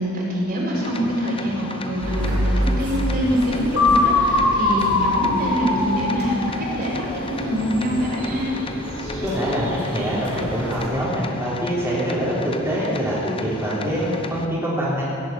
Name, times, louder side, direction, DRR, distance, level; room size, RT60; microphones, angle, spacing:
voice 1, 0.0-8.5, equal, 45° right, -5 dB, 4.6 m, -25 dB
sound 1, 0.7-14.5, left 3 dB, 25° left, 0.8 m, -35 dB
sound 2, 2.0-10.9, equal, 75° right, 4.1 m, -29 dB
sound 3, 3.8-7.6, left 2 dB, 80° left, 2.0 m, -22 dB
voice 2, 9.2-15.0, equal, 10° right, -9 dB, 3.3 m, -24 dB
17.0 x 9.0 x 9.0 m, 2.8 s
head